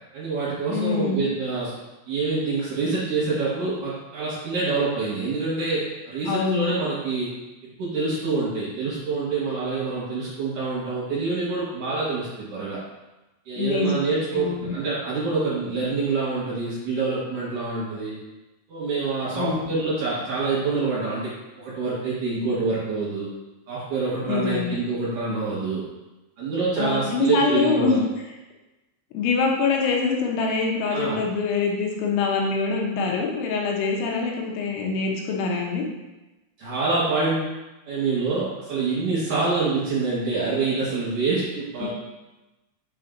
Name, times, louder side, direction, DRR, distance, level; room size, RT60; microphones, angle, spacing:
voice 1, 0.1-1.7 2.1-7.3 7.8-12.8 13.5-18.1 18.7-21.3 21.6-23.3 23.7-25.8 26.4-28.0 30.9-31.2 36.6-37.4 37.9-41.9, right 3 dB, 55° right, -10 dB, 2.9 m, -26 dB
voice 2, 0.7-1.2 6.3-6.7 13.6-13.9 14.3-14.7 19.3-19.7 24.3-24.8 26.8-28.0 29.1-35.8 41.8-41.9, left 4 dB, 85° left, 0 dB, 3.3 m, -24 dB
7.4 x 3.4 x 3.8 m, 1.0 s
omnidirectional pair, 5.2 m